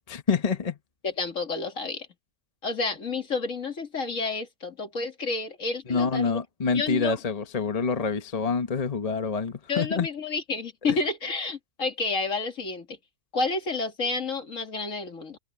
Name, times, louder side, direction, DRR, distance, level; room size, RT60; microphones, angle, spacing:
voice 1, 0.1-0.8 5.9-10.1 10.9-11.0, left 5 dB, 30° left, 0.9 m, -27 dB
voice 2, 1.0-2.1 2.6-6.4 6.7-7.2 9.7-13.0 13.3-15.4, left 3 dB, 50° left, 2.5 m, -30 dB
omnidirectional pair, 1.8 m